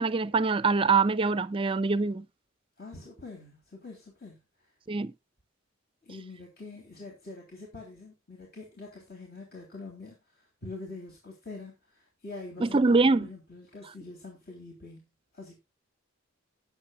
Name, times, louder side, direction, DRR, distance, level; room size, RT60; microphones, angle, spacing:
voice 1, 0.0-2.3 4.9-5.1 12.6-13.3, right 4 dB, 25° right, 0.5 m, -24 dB
voice 2, 2.8-4.7 6.0-15.0 15.3-15.6, left 3 dB, 50° left, 3.2 m, -45 dB
18.5 x 7.5 x 2.3 m
head